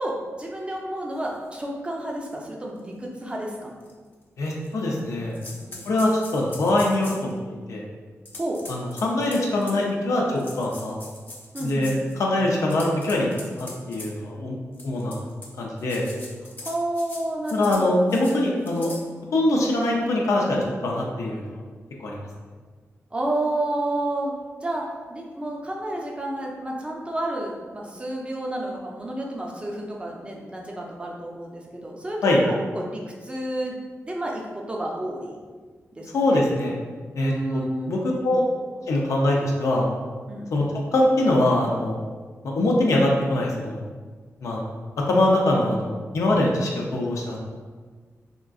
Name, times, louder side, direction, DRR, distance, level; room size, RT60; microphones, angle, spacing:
voice 1, 0.0-3.7 5.7-5.9 8.4-8.6 11.5-12.1 16.6-18.0 23.1-24.3 24.6-24.8 25.1-35.4 35.9-36.4 37.2-38.0 38.3-38.4 40.3-40.5, right 1 dB, 20° right, -1 dB, 0.5 m, -30 dB
sound 1, 1.5-1.6 2.2-2.3 2.8-2.9 3.8-3.9 4.4-5.0 5.3-7.3 8.2-9.8 10.3-12.1 12.6-14.1 14.7-15.5 15.8-17.2 17.4-17.8 18.1-18.3 18.6-19.0, left 2 dB, 35° left, 0.6 m, -41 dB
voice 2, 4.4-5.3 5.8-7.4 7.7-7.8 8.7-11.0 11.6-13.3 13.6-14.6 14.8-15.2 15.6-16.1 17.5-18.9 19.3-21.5 22.0-22.3 32.2-32.4 36.1-36.7 37.2-38.5 38.9-39.9 40.5-40.6 40.9-42.0 42.4-43.9 44.4-44.6 45.0-47.4, left 1 dB, 80° left, -2 dB, 0.5 m, -23 dB
3.6 x 2.5 x 2.3 m, 1.5 s
wide cardioid pair, 115°, 5 cm